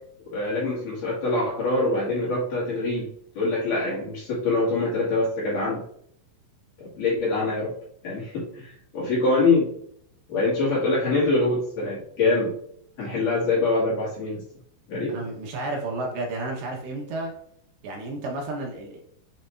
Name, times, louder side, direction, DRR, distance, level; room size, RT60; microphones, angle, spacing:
voice 1, 0.2-3.1 3.3-5.8 6.8-7.7 8.0-9.7 10.3-12.5 13.0-14.4 14.9-15.2, left 3 dB, 50° left, -7 dB, 3.4 m, -24 dB
voice 2, 15.1-17.3 17.8-19.0, right 2 dB, 75° right, 0 dB, 3.3 m, -31 dB
8.0 x 6.2 x 2.6 m, 0.67 s
omnidirectional pair, 5.4 m